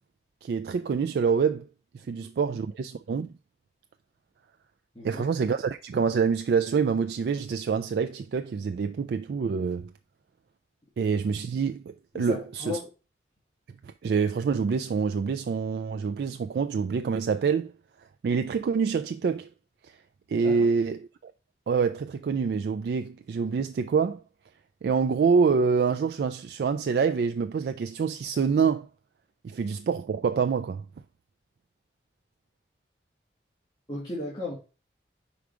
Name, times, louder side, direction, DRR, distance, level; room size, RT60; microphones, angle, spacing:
voice 1, 0.4-1.7 1.9-3.3 5.0-9.9 11.0-12.8 14.0-17.7 18.2-19.5 20.3-21.3 21.7-24.2 24.8-28.9 29.4-30.8, right 5 dB, 70° right, 0.3 m, -26 dB
voice 2, 4.9-5.3 12.1-12.9 20.4-20.7 33.9-34.6, left 2 dB, 25° left, 1.6 m, -35 dB
4.9 x 4.6 x 4.9 m
head